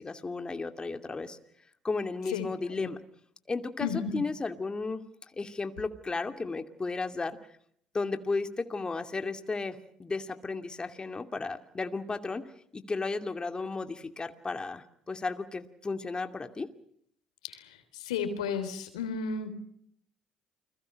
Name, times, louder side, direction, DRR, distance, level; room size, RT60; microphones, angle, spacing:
voice 1, 0.0-1.4 1.8-3.0 3.5-5.0 5.3-7.4 7.9-16.7, left 3 dB, 25° left, 8 dB, 2.6 m, -34 dB
voice 2, 18.0-19.5, left 6 dB, 90° left, 10 dB, 3.6 m, -32 dB
29.5 x 22.0 x 6.5 m, 0.67 s
hypercardioid pair, 60°, 3 cm